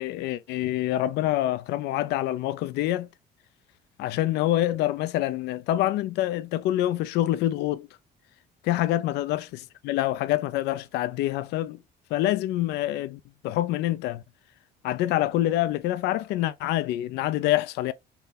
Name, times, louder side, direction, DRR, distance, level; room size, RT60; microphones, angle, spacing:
voice 1, 0.0-3.1 4.0-7.9 8.6-11.8 12.1-14.2 14.8-17.9, left 14 dB, 85° left, 0.5 m, -26 dB
5.7 x 2.1 x 4.0 m
cardioid pair, 110°, 17 cm